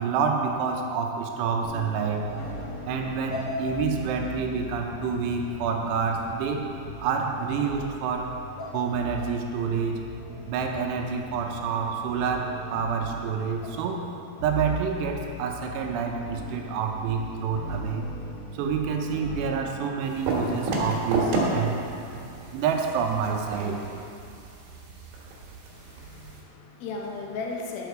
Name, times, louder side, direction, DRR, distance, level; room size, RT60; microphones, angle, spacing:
voice 1, 0.0-2.3 2.9-6.7 7.0-8.4 8.7-10.1 10.5-14.1 14.4-18.1 18.5-21.8 22.5-23.8, right 6 dB, 80° right, 2 dB, 2.8 m, -28 dB
sound 1, 1.6-19.6, equal, 60° left, 1.5 m, -38 dB
sound 2, 20.0-26.4, right 2 dB, 65° right, 2.9 m, -32 dB
voice 2, 25.7-27.9, left 4 dB, 75° left, 1 dB, 2.2 m, -36 dB
10.5 x 6.8 x 4.6 m, 2.6 s
omnidirectional pair, 5.3 m